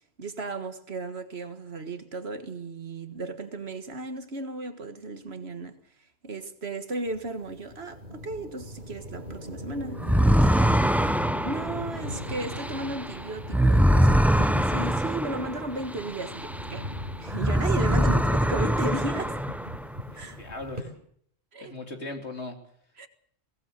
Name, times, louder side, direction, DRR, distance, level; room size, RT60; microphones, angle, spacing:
voice 1, 0.2-5.8 6.2-10.8 11.4-16.9 17.2-19.4 20.2-20.4 21.5-21.7 23.0-23.1, right 2 dB, 70° right, 2.0 m, -35 dB
sound 1, 7.1-20.8, equal, 45° right, 4.9 m, -41 dB
sound 2, 10.0-16.9 17.3-20.0, equal, ahead, 0.5 m, -24 dB
voice 2, 20.0-20.9 21.6-22.6, left 2 dB, 90° left, 3.4 m, -39 dB
22.0 x 18.0 x 6.7 m
omnidirectional pair, 1.1 m